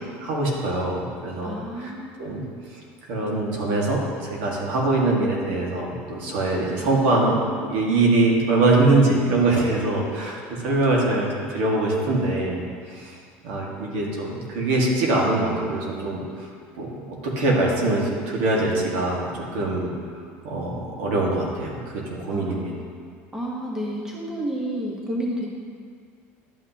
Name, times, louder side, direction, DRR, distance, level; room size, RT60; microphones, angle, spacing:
voice 1, 0.2-1.9 2.2-2.4 3.1-7.4 7.7-12.6 12.9-13.2 13.4-16.5 16.8-16.9 17.2-19.9 20.4-22.7, right 2 dB, 80° right, -3 dB, 1.8 m, -23 dB
voice 2, 1.4-2.4 22.3-22.9 23.3-25.5, right 1 dB, 10° right, -3 dB, 1.2 m, -31 dB
12.0 x 5.8 x 2.9 m, 2.1 s
cardioid pair, 135°, 6 cm